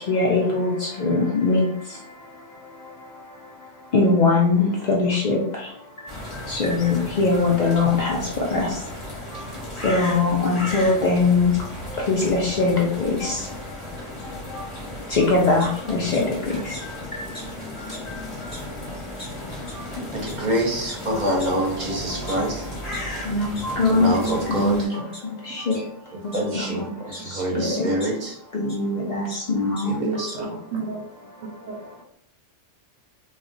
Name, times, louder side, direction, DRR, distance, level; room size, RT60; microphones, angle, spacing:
voice 1, 0.1-1.7 3.9-5.4 6.5-8.2 8.5-8.7 9.8-11.5 12.1-13.4 15.1-16.2 23.3-24.1 24.5-25.0 25.5-25.8 26.2-26.9 27.6-27.9 28.5-30.0, left 3 dB, 80° left, -2 dB, 0.4 m, -21 dB
sound 1, 6.1-24.9, left 1 dB, 30° left, 0.7 m, -35 dB
sound 2, 15.1-15.7 16.1-16.2 16.7-16.8 17.3-17.4 17.8-18.1 18.5-18.6 19.2-19.3 19.7-19.8 20.3-20.4 20.9-21.0 21.4-21.5 22.1-23.0 23.6-23.7 24.0-24.7 25.1-25.2 25.7-25.8 26.3-27.2 28.0-28.1 28.7-28.8 29.1-29.4 29.8-29.9 30.1-30.3, left 1 dB, 5° right, 0.8 m, -40 dB
voice 2, 20.1-22.7 23.9-24.7 26.3-26.9 27.2-28.3 29.9-30.6, right 1 dB, 45° right, -1 dB, 0.7 m, -26 dB
voice 3, 24.0-24.4 26.3-26.5 30.0-31.0 31.7-31.8, right 5 dB, 85° right, 0 dB, 1.0 m, -28 dB
2.3 x 2.1 x 3.7 m, 0.69 s
omnidirectional pair, 1.3 m